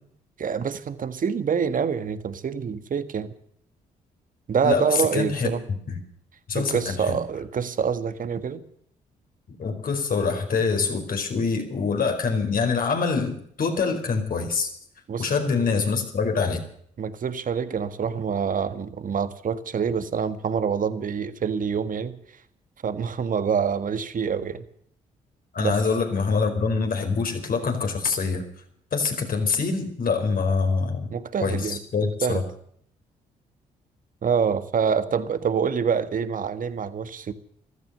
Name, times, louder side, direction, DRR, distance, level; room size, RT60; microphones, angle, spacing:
voice 1, 0.4-3.3 4.5-5.6 6.5-8.6 15.1-15.3 17.0-22.2 22.8-24.6 25.6-25.8 31.1-32.4 34.2-37.3, right 6 dB, 50° right, 1.6 m, -26 dB
voice 2, 5.1-5.5 5.9-6.0 6.5-7.2 9.5-14.7 15.2-16.6 25.5-28.4 28.9-31.1 31.4-32.4, left 4 dB, 55° left, 4.8 m, -25 dB
15.0 x 14.0 x 6.7 m
hypercardioid pair, 50°, 17 cm